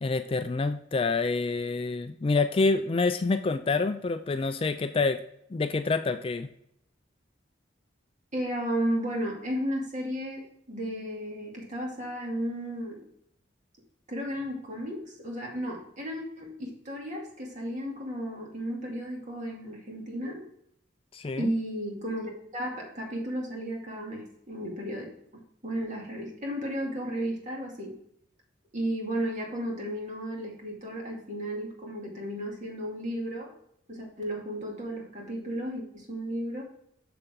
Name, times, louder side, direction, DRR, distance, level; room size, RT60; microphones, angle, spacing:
voice 1, 0.0-5.2 5.5-6.5 21.1-21.5, left 3 dB, 30° left, 10 dB, 0.3 m, -27 dB
voice 2, 8.3-13.0 14.1-20.4 21.4-25.1 25.6-27.9 28.7-33.5 33.9-36.6, equal, 40° right, -1 dB, 2.3 m, -34 dB
6.9 x 6.9 x 3.6 m, 0.73 s
head